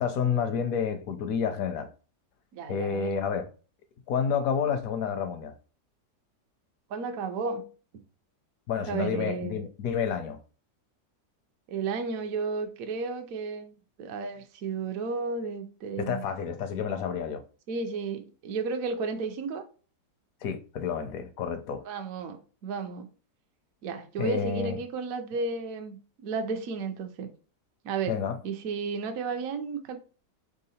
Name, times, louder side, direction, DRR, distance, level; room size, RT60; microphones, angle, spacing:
voice 1, 0.0-1.9 2.7-3.5 4.1-5.5 8.7-10.4 16.0-17.4 20.4-21.8 24.2-24.8 28.1-28.4, left 7 dB, 70° left, 0.9 m, -29 dB
voice 2, 2.5-3.2 6.9-7.7 8.9-9.6 11.7-16.2 17.7-19.6 21.8-23.1 23.8-27.3 27.8-30.0, right 4 dB, 65° right, 0.9 m, -33 dB
3.7 x 3.5 x 4.1 m
omnidirectional pair, 1.9 m